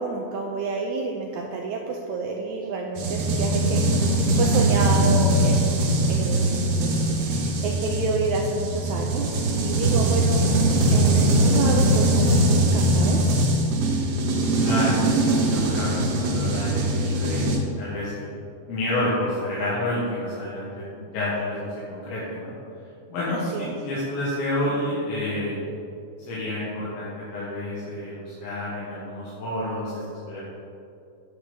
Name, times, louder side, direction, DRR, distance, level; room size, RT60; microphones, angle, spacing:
voice 1, 0.0-3.8 4.1-5.6 6.1-6.9 7.2-13.3 23.5-23.7, right 4 dB, 90° right, 1 dB, 1.7 m, -29 dB
sound 1, 3.0-17.6, right 1 dB, 70° right, 1.5 m, -21 dB
voice 2, 14.6-18.3 18.7-22.5 23.1-25.6 26.2-30.4, left 1 dB, 90° left, -8 dB, 3.3 m, -29 dB
9.8 x 7.5 x 3.8 m, 2.6 s
omnidirectional pair, 4.1 m